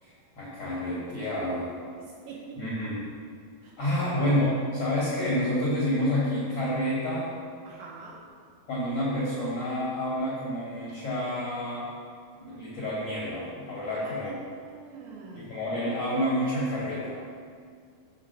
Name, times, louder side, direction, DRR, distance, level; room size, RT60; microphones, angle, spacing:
voice 1, 0.0-1.7 2.6-3.0 3.8-7.3 8.7-11.9 12.4-14.3 15.4-17.2, left 1 dB, 70° left, -8 dB, 1.5 m, -29 dB
voice 2, 2.0-2.6 3.6-4.0 7.7-8.2 13.9-14.3 14.6-15.6, right 5 dB, 75° right, -4 dB, 2.3 m, -45 dB
5.9 x 4.4 x 6.3 m, 2.1 s
omnidirectional pair, 4.6 m